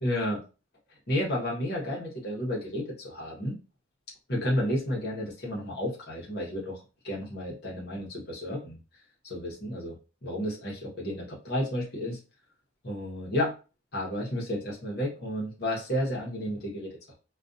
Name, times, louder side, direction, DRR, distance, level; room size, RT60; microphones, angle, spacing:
voice 1, 0.0-0.4 1.1-3.6 4.3-8.8 9.2-9.9 10.2-12.2 12.8-13.5 13.9-17.1, left 1 dB, 50° left, -4 dB, 0.9 m, -31 dB
2.6 x 2.4 x 2.4 m, 0.32 s
head